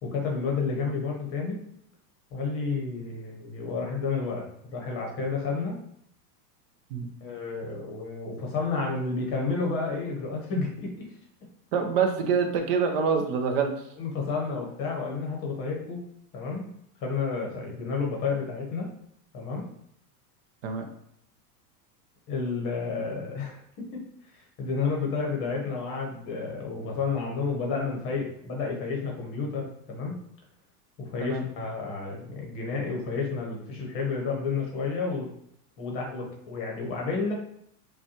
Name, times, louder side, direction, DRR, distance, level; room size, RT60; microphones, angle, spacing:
voice 1, 0.0-1.6 2.3-5.8 7.2-11.1 14.0-16.0 16.3-16.7 17.0-18.9 19.3-19.6 22.3-23.6 23.9-24.0 24.6-30.2 31.0-35.3 35.8-37.3, left 4 dB, 30° left, -1 dB, 0.9 m, -31 dB
voice 2, 11.7-13.7 20.6-20.9 31.2-31.4, right 5 dB, 40° right, 4 dB, 0.5 m, -25 dB
5.2 x 2.3 x 2.9 m, 0.70 s
supercardioid pair, 160°, 47 cm